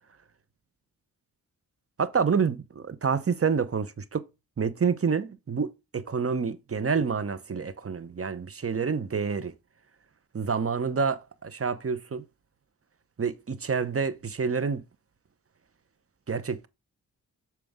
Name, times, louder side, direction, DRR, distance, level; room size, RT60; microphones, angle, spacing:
voice 1, 2.0-4.2 4.6-9.5 10.3-12.2 13.2-14.8 16.3-16.7, right 6 dB, 35° right, 0.9 m, -28 dB
6.9 x 4.6 x 3.6 m
cardioid pair, 55°, 38 cm